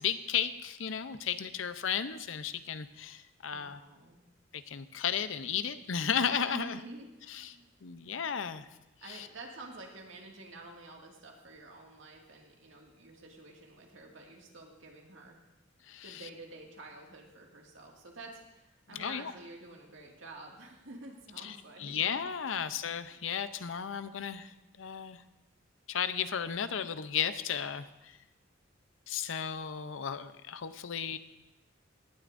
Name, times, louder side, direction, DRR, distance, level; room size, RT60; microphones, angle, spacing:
voice 1, 0.0-3.8 4.5-6.8 7.3-7.6 7.8-8.7 9.1-9.3 15.9-16.1 18.9-19.3 21.4-25.2 25.9-28.2 29.1-31.2, left 8 dB, 75° left, 12 dB, 0.6 m, -34 dB
voice 2, 3.5-4.2 6.5-7.7 9.0-15.4 16.0-22.0, right 2 dB, 75° right, 0 dB, 2.0 m, -49 dB
18.5 x 11.5 x 2.6 m, 0.96 s
head